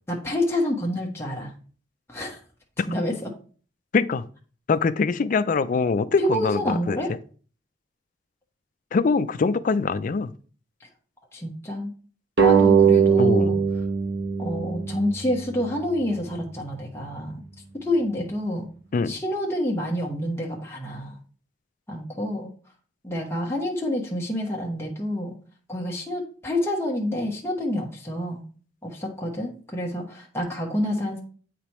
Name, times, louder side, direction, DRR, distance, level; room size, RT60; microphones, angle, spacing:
voice 1, 0.1-1.5 2.1-2.4 2.9-3.3 6.2-7.1 10.8-10.9 11.3-11.9 12.4-13.6 14.4-17.4 17.8-18.7 19.1-21.2 21.9-22.5 23.0-25.3 25.7-28.4 28.8-31.2, left 1 dB, 15° left, -2 dB, 1.1 m, -28 dB
voice 2, 3.9-4.3 4.7-7.0 8.9-10.3 13.2-13.6 18.9-19.2, left 4 dB, 45° left, 14 dB, 0.4 m, -23 dB
sound 1, 12.4-15.6, right 7 dB, 65° right, 1.0 m, -20 dB
8.3 x 5.0 x 3.0 m, 0.41 s
head